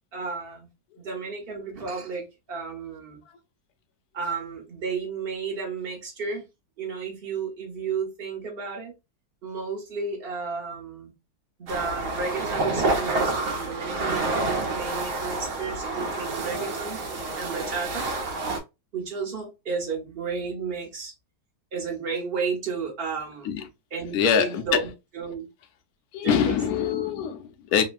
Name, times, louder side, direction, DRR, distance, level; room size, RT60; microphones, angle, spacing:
voice 1, 0.1-0.7 1.0-3.2 4.1-6.4 6.8-8.9 9.4-11.1 11.6-18.1 18.9-21.1 21.7-23.5 23.9-24.9 25.1-25.5 26.2-26.6, right 5 dB, 40° right, 1.0 m, -32 dB
sound 1, 11.7-18.6, right 2 dB, 65° right, 1.0 m, -28 dB
voice 2, 24.1-24.8 26.1-27.8, left 8 dB, 70° left, 1.0 m, -24 dB
3.1 x 2.2 x 2.4 m
omnidirectional pair, 1.8 m